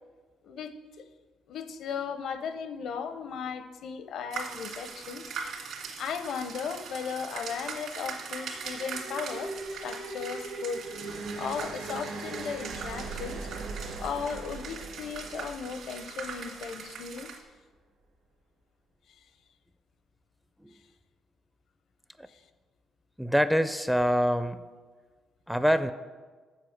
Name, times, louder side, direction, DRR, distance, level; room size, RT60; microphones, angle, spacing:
voice 1, 1.5-5.2 6.0-10.8 11.4-13.5 14.0-17.3 22.3-22.4, left 6 dB, 70° left, 10 dB, 0.7 m, -36 dB
sound 1, 4.3-17.4, right 5 dB, 70° right, 2.0 m, -41 dB
sound 2, 7.4-16.7, right 3 dB, 85° right, 1.8 m, -40 dB
voice 2, 23.2-24.6 25.5-25.9, equal, ahead, 11 dB, 0.4 m, -25 dB
7.5 x 7.5 x 6.5 m, 1.4 s
cardioid pair, 110°, 0 cm